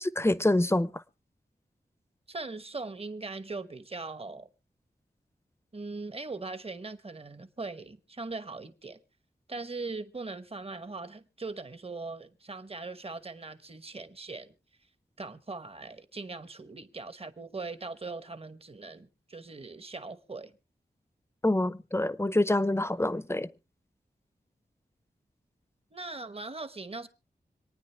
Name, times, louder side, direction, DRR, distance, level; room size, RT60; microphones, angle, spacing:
voice 1, 0.0-1.0 21.4-23.5, left 1 dB, 15° left, 0.6 m, -26 dB
voice 2, 2.3-4.5 5.7-9.0 9.5-14.5 15.2-20.6 25.9-27.1, right 3 dB, 35° right, 1.0 m, -40 dB
26.0 x 9.5 x 3.3 m
wide cardioid pair, 60°, 17 cm